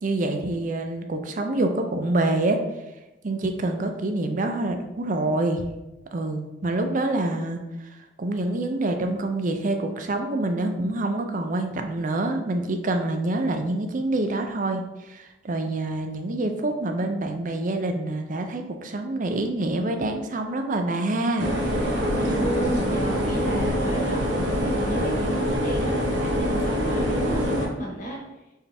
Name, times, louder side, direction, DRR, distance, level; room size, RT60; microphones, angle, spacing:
voice 1, 0.0-2.6 3.2-5.6 6.1-7.6 8.2-14.8 15.1-21.5, right 2 dB, 45° right, 5 dB, 0.5 m, -26 dB
sound 1, 21.4-27.7, equal, 75° right, 1.0 m, -24 dB
voice 2, 22.1-28.2, right 1 dB, 45° left, -1 dB, 1.2 m, -32 dB
4.5 x 3.4 x 3.3 m, 0.99 s
head